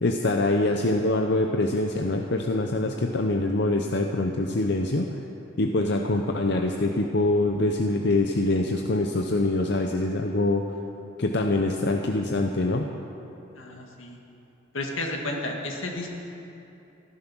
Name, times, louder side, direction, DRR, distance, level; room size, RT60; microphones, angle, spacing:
voice 1, 0.0-5.1 5.6-10.6 11.2-12.9, left 2 dB, 55° left, 3 dB, 0.7 m, -24 dB
voice 2, 13.5-14.2 14.7-16.1, left 2 dB, 80° left, 1 dB, 2.0 m, -32 dB
14.5 x 12.5 x 6.2 m, 2.8 s
head